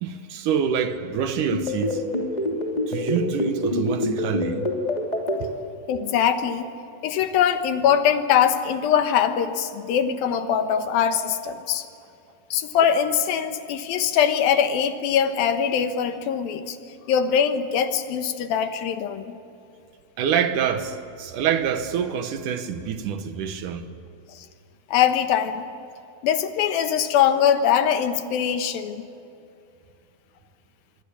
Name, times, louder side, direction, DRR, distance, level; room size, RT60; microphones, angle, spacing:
voice 1, 0.0-2.0 2.9-4.7 20.2-23.9, right 7 dB, 70° right, 2.4 m, -26 dB
sound 1, 1.5-5.4, left 1 dB, 10° left, 2.9 m, -25 dB
voice 2, 5.9-6.7 7.0-11.9 12.5-16.8 17.1-19.4 24.4-24.5 24.9-25.7 26.2-29.1, left 8 dB, 85° left, 3.0 m, -22 dB
25.5 x 23.0 x 8.5 m
omnidirectional pair, 4.2 m